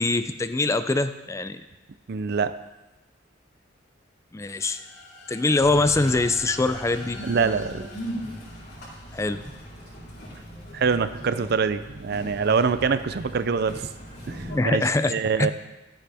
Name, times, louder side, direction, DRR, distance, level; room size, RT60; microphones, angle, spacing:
voice 1, 0.0-1.6 4.3-4.8 5.3-7.2 9.1-9.4 14.5-15.1 15.4-15.5, left 2 dB, 15° left, 11 dB, 0.4 m, -23 dB
voice 2, 2.1-2.5 7.2-7.9 10.7-13.9 14.3-14.8 15.1-15.5, right 5 dB, 55° right, 12 dB, 0.5 m, -24 dB
sound 1, 4.5-9.3, left 3 dB, 80° left, 1.4 m, -46 dB
sound 2, 5.6-14.6, equal, 55° left, 4.1 m, -39 dB
13.0 x 9.1 x 3.5 m, 1.0 s
head